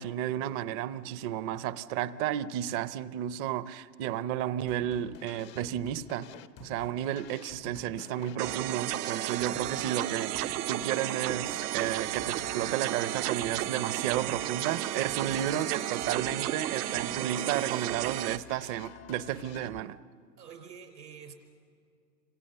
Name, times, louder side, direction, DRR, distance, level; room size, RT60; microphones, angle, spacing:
voice 1, 0.0-6.3 6.6-20.0, right 11 dB, 30° right, 0.6 m, -32 dB
sound 1, 4.7-19.8, left 10 dB, 25° left, 0.5 m, -50 dB
sound 2, 8.4-18.4, right 14 dB, 65° right, 0.8 m, -33 dB
voice 2, 14.0-14.3 14.9-15.9 16.7-17.9 18.2-18.4 20.4-21.3, right 7 dB, 85° right, 5.3 m, -50 dB
28.5 x 26.5 x 6.8 m
hypercardioid pair, 125°, 49 cm